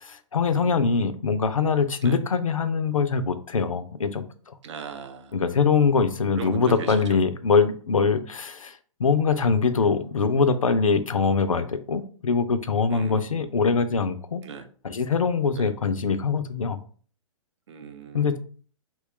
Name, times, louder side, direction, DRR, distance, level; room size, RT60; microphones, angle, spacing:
voice 1, 0.0-4.2 5.3-8.7 9.0-14.4 14.8-16.8 18.1-18.4, left 5 dB, 90° left, 11 dB, 0.4 m, -23 dB
voice 2, 4.6-5.4 6.3-7.2 12.9-13.4 14.4-14.7 15.5-15.7 17.7-18.4, right 6 dB, 60° right, 8 dB, 0.5 m, -38 dB
2.9 x 2.2 x 3.1 m, 0.43 s
figure-of-eight pair, 120°, 17 cm